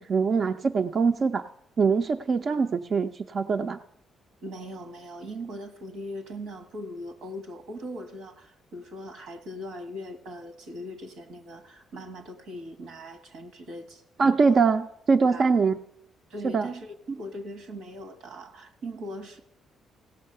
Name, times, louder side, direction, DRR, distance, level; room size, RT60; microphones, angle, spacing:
voice 1, 0.0-1.4 1.8-3.8 14.2-15.8 16.5-16.7, right 5 dB, 45° right, 0.4 m, -23 dB
voice 2, 4.4-14.6 15.2-15.5 16.3-19.4, equal, 85° right, 1.5 m, -40 dB
16.5 x 6.4 x 6.6 m
cardioid pair, 90°, 0 cm